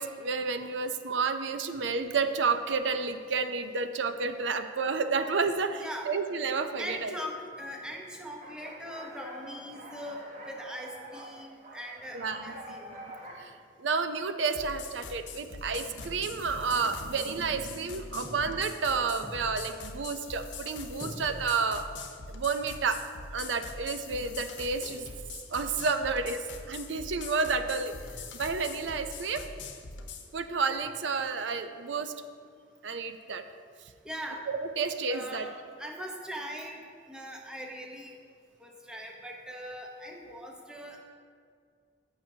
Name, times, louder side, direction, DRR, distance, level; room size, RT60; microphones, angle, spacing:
voice 1, 0.0-7.1 12.1-12.5 13.4-21.8 22.3-23.0 23.3-25.1 25.5-27.9 28.3-29.4 30.3-32.1 32.8-33.4 34.5-35.5, right 4 dB, 90° right, 9 dB, 0.6 m, -30 dB
voice 2, 5.8-6.1 6.8-13.0 18.2-18.4 19.2-19.4 21.0-21.3 28.1-28.2 34.0-34.4 35.1-38.1 38.6-41.0, equal, 5° right, 0 dB, 0.9 m, -41 dB
sound 1, 8.4-13.4, right 1 dB, 40° right, 1.2 m, -46 dB
sound 2, 14.4-30.3, left 4 dB, 85° left, 0.8 m, -43 dB
14.5 x 6.0 x 2.8 m, 2.2 s
head